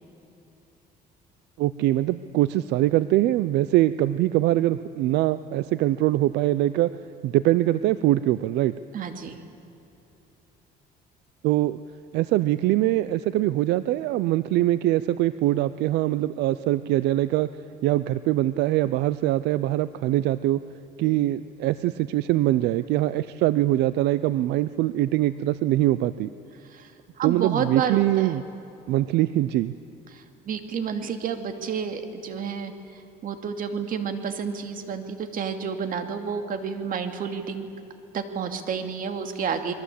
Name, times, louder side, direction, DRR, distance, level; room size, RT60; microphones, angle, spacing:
voice 1, 1.6-6.9 7.2-8.7 11.4-11.8 12.1-17.5 17.8-20.6 21.0-26.3 27.2-28.4 28.9-29.7, right 15 dB, 85° right, 15 dB, 0.6 m, -23 dB
voice 2, 8.9-9.4 26.7-26.9 27.2-28.4 30.1-37.7 38.1-39.7, right 6 dB, 55° right, 7 dB, 2.6 m, -30 dB
29.5 x 21.5 x 8.4 m, 3.0 s
cardioid pair, 110°, 17 cm